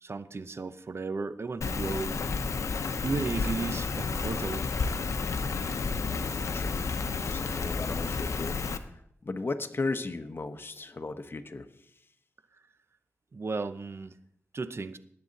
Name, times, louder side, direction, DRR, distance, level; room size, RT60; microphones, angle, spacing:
voice 1, 0.0-2.2 2.8-4.6 6.3-6.6 13.3-14.1 14.5-15.0, right 4 dB, 55° right, 12 dB, 0.8 m, -34 dB
Rain, 1.6-8.8, left 4 dB, 75° left, 0.8 m, -31 dB
voice 2, 7.2-8.9 9.2-11.7, left 3 dB, 45° left, 8 dB, 1.1 m, -36 dB
18.5 x 7.7 x 4.1 m, 0.73 s
cardioid pair, 50°, 5 cm